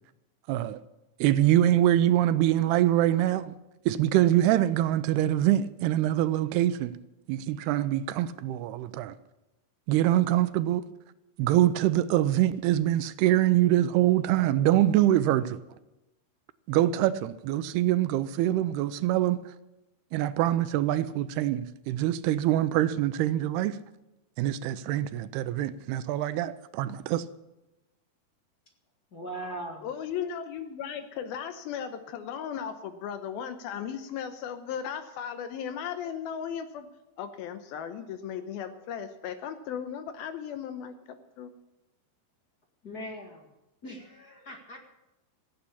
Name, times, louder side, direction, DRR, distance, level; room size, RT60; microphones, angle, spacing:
voice 1, 0.5-0.8 1.2-3.5 3.9-6.9 7.3-9.1 9.9-10.8 11.4-15.6 16.7-19.4 20.1-23.8 24.4-27.2, right 13 dB, 80° right, 2.7 m, -24 dB
voice 2, 29.1-29.9 42.8-43.5 43.8-44.8, right 1 dB, 40° left, 1.4 m, -40 dB
voice 3, 29.8-36.9 37.2-41.5, left 8 dB, 80° left, 2.6 m, -36 dB
16.0 x 9.1 x 8.4 m
omnidirectional pair, 4.6 m